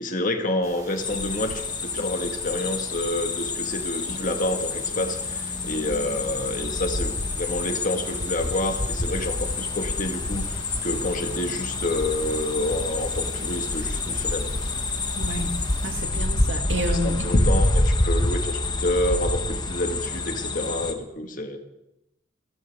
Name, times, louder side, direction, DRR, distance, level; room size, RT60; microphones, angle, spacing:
voice 1, 0.0-14.7 16.9-21.6, left 1 dB, 45° left, 5 dB, 1.7 m, -28 dB
sound 1, 0.6-16.0, right 2 dB, 15° right, 2.1 m, -45 dB
sound 2, 1.0-20.9, left 2 dB, 20° left, 1.1 m, -27 dB
voice 2, 15.2-15.6 15.8-17.5, right 1 dB, 75° right, 4 dB, 2.3 m, -29 dB
29.5 x 12.5 x 3.5 m, 0.85 s
head